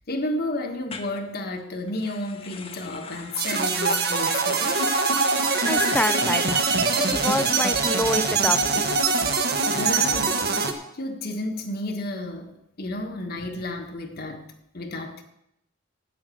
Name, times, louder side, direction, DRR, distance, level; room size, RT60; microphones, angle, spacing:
voice 1, 0.1-4.8 7.1-7.2 9.7-10.4 11.0-12.5 12.8-14.4 14.7-15.2, left 1 dB, 50° left, 1.5 m, -31 dB
sound 1, 0.9-1.1 1.9-8.2, left 5 dB, 30° left, 1.0 m, -40 dB
sound 2, 3.4-10.7, right 4 dB, 55° right, 1.2 m, -23 dB
voice 2, 5.7-6.7 7.1-9.0, left 1 dB, 5° left, 0.4 m, -27 dB
9.1 x 8.1 x 7.8 m
head